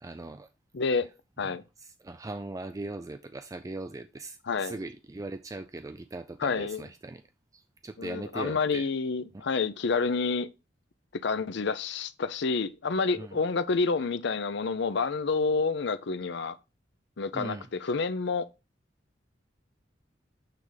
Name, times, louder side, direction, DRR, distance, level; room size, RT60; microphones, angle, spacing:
voice 1, 0.0-0.5 1.4-7.2 7.5-8.9 9.3-9.4 13.2-13.4 17.3-17.9, right 2 dB, 20° right, 0.4 m, -40 dB
voice 2, 0.7-1.1 1.4-1.6 4.5-4.8 6.4-6.8 8.0-10.5 11.2-16.6 17.2-18.5, left 4 dB, 65° left, 0.6 m, -28 dB
9.0 x 3.5 x 3.9 m
head